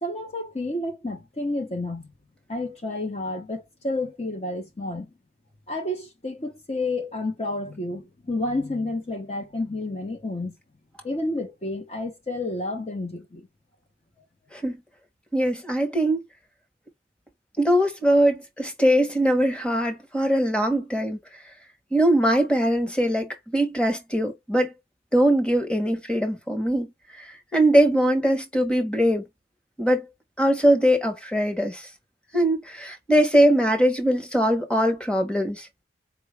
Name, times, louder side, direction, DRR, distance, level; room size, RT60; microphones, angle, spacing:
voice 1, 0.0-2.1 2.5-5.1 5.7-10.6 11.0-13.5, left 2 dB, 35° left, 0.8 m, -30 dB
voice 2, 15.3-16.2 17.6-21.2 21.9-24.7 25.1-26.9 27.2-29.2 29.8-30.1 30.4-31.9 32.3-35.7, equal, 5° left, 1.1 m, -21 dB
4.8 x 2.4 x 3.2 m
head